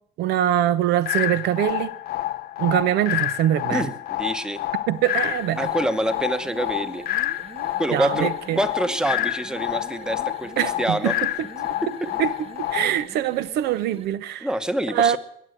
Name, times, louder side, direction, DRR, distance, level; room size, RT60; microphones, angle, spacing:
voice 1, 0.2-2.0 2.6-3.9 4.9-5.7 7.9-8.6 10.6-11.1 12.2-12.3 12.7-14.5 14.9-15.2, right 11 dB, 75° right, 0.7 m, -23 dB
sound 1, 1.1-13.1, left 15 dB, 65° left, 0.5 m, -28 dB
voice 2, 3.7-4.6 5.6-7.0 7.8-8.3 8.5-10.5 10.8-11.1 11.8-12.1 14.4-15.2, right 1 dB, 5° right, 0.9 m, -26 dB
sound 2, 4.9-14.2, right 6 dB, 35° right, 1.0 m, -44 dB
21.5 x 7.7 x 7.9 m
cardioid pair, 110°, 17 cm